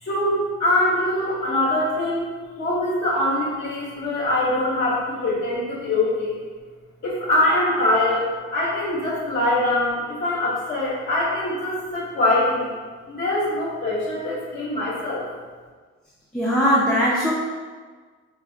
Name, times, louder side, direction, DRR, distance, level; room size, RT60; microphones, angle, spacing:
voice 1, 0.0-2.3 2.6-6.4 7.0-12.7 13.1-15.2, left 1 dB, 35° left, -7 dB, 0.7 m, -23 dB
voice 2, 16.3-17.3, equal, 5° left, -7 dB, 0.3 m, -19 dB
2.9 x 2.1 x 2.6 m, 1.5 s
cardioid pair, 90°, 30 cm